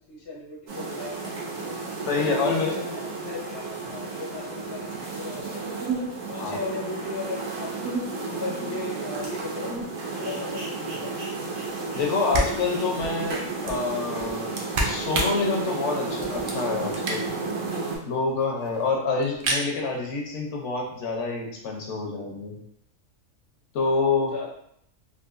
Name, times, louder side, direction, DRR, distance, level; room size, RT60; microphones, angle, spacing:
voice 1, 0.1-1.7 2.1-5.8 6.3-9.8 10.1-11.3 18.9-19.1 23.9-24.5, left 3 dB, 25° left, -2 dB, 0.5 m, -36 dB
sound 1, 0.7-18.0, right 3 dB, 85° right, 1.3 m, -32 dB
voice 2, 2.1-2.7 6.3-6.6 11.9-17.3 18.1-22.6 23.7-24.3, left 4 dB, 70° left, 0 dB, 0.9 m, -27 dB
sound 2, 12.0-12.1 12.3-17.5 17.9-18.0 18.1-18.2 18.4-18.9 19.2-19.7, right 1 dB, 55° right, 0.6 m, -31 dB
3.7 x 2.6 x 2.4 m, 0.73 s
omnidirectional pair, 1.3 m